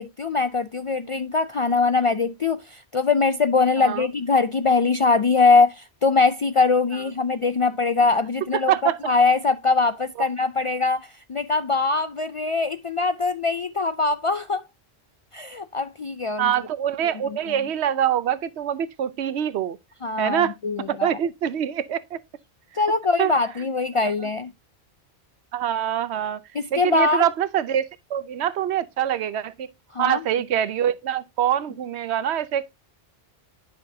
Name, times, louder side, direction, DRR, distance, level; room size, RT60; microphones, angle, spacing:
voice 1, 0.0-14.6 15.3-16.5 17.2-17.4 20.0-21.1 22.8-24.5 26.5-27.2 29.9-30.2, left 4 dB, 55° left, 0.3 m, -22 dB
voice 2, 8.5-9.0 16.4-19.8 20.2-20.5 20.9-22.2 23.2-23.3 24.0-24.1 25.5-26.4 26.7-29.7 30.0-32.7, right 10 dB, 90° right, 1.0 m, -24 dB
10.5 x 5.8 x 2.7 m
omnidirectional pair, 1.1 m